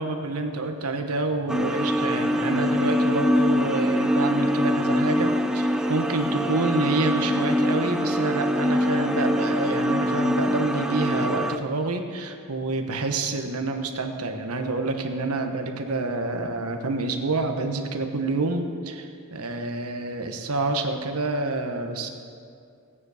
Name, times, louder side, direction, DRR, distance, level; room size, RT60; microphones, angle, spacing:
voice 1, 0.0-22.1, right 2 dB, 75° right, 5 dB, 1.2 m, -28 dB
sound 1, 1.5-11.6, equal, 5° right, 0.5 m, -24 dB
16.5 x 9.8 x 4.9 m, 2.4 s
head